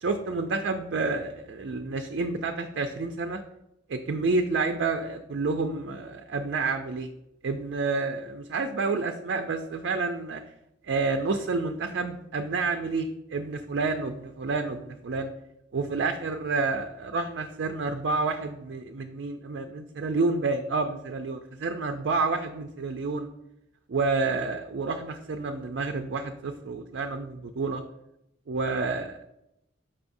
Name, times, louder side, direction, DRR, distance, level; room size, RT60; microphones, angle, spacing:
voice 1, 0.0-3.4 3.9-7.1 7.4-10.4 10.8-15.3 15.7-23.3 23.9-27.8 28.5-29.2, right 3 dB, 65° right, 5 dB, 0.4 m, -29 dB
6.9 x 5.4 x 2.6 m, 0.84 s
head